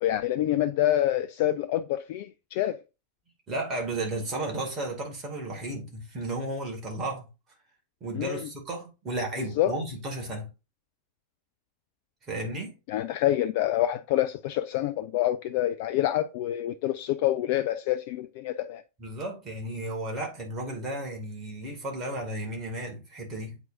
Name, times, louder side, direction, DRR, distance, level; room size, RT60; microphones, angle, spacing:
voice 1, 0.0-2.8 8.1-8.4 9.6-9.7 12.9-18.8, left 13 dB, 50° left, 0.3 m, -27 dB
voice 2, 3.5-7.3 8.0-10.5 12.3-12.7 19.0-23.6, right 1 dB, 30° right, 2.4 m, -33 dB
8.1 x 4.5 x 2.6 m
figure-of-eight pair, 90°, 0 cm